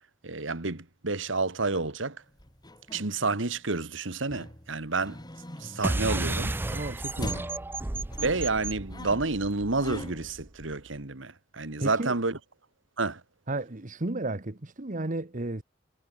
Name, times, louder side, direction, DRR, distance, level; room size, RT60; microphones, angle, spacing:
voice 1, 0.2-2.2 2.9-5.2 5.6-6.8 8.2-12.4 13.0-13.2, right 3 dB, 70° right, 1.9 m, -30 dB
sound 1, 2.3-3.7 4.3-6.7 7.2-10.4, left 1 dB, 20° left, 3.7 m, -42 dB
sound 2, 5.8-10.7, right 2 dB, 10° right, 0.4 m, -33 dB
voice 2, 6.7-7.5 11.8-12.2 13.5-15.6, right 2 dB, 40° right, 1.3 m, -33 dB
head